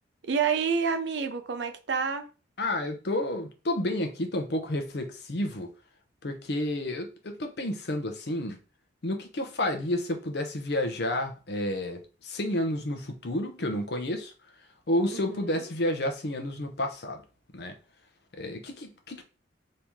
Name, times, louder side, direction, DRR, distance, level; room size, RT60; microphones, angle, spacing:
voice 1, 0.2-2.3 15.1-15.7, right 6 dB, 65° right, 0.5 m, -29 dB
voice 2, 2.6-5.7 6.2-8.6 9.0-14.3 14.9-17.2 17.5-17.8 18.4-19.2, left 1 dB, 60° left, 0.7 m, -30 dB
3.0 x 2.8 x 3.5 m
head